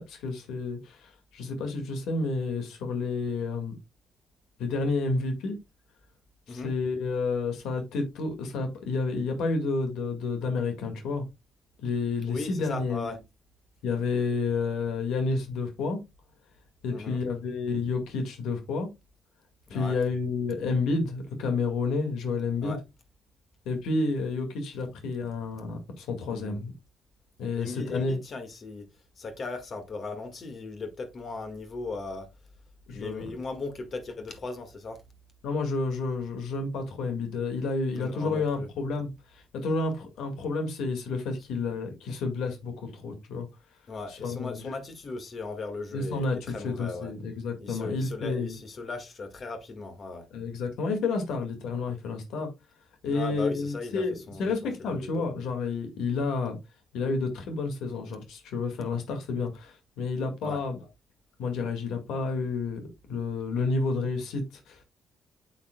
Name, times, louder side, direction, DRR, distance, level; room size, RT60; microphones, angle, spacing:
voice 1, 0.0-3.7 4.6-5.6 6.5-11.3 11.8-13.1 13.8-16.0 16.8-18.9 19.7-22.8 23.7-26.7 27.4-28.2 32.9-33.3 35.4-43.5 44.1-44.7 45.9-48.6 50.3-52.5 53.0-56.6 56.9-60.8 61.4-64.8, left 3 dB, 85° left, 1.9 m, -30 dB
voice 2, 12.3-13.2 16.9-17.2 19.7-20.0 22.6-22.8 26.3-26.6 27.6-28.9 29.2-32.3 32.9-35.0 38.0-38.7 43.9-47.1 47.6-50.3 53.1-54.5 54.9-55.3 60.4-60.6, left 3 dB, 45° left, 1.7 m, -37 dB
8.2 x 7.4 x 2.2 m
cardioid pair, 90°, 0 cm